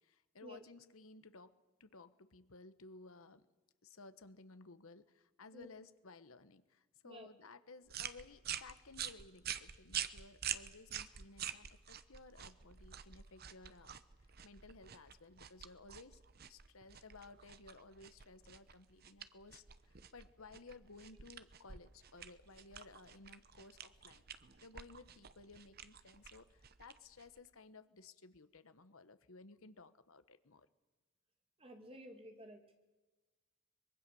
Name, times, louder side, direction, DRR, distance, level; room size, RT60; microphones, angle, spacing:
voice 1, 0.0-3.5 3.8-13.9 14.4-16.2 16.5-24.2 24.6-30.7, left 3 dB, 75° left, 12 dB, 1.2 m, -57 dB
sound 1, 7.9-27.5, right 9 dB, 45° right, 0.9 m, -48 dB
voice 2, 31.6-32.6, equal, 25° right, 5 dB, 2.4 m, -53 dB
24.0 x 22.0 x 7.1 m, 1.2 s
head